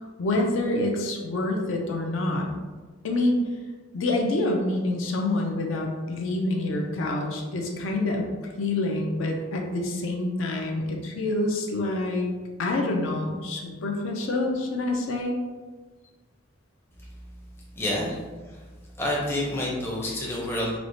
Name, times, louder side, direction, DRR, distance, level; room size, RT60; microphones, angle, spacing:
voice 1, 0.0-2.5 3.0-3.4 3.9-8.2 8.6-12.3 12.6-15.4, left 2 dB, 70° left, 1 dB, 0.5 m, -27 dB
voice 2, 17.8-18.1 18.5-18.6 19.0-20.8, left 1 dB, 10° left, -5 dB, 0.5 m, -28 dB
4.4 x 2.0 x 2.6 m, 1.3 s
head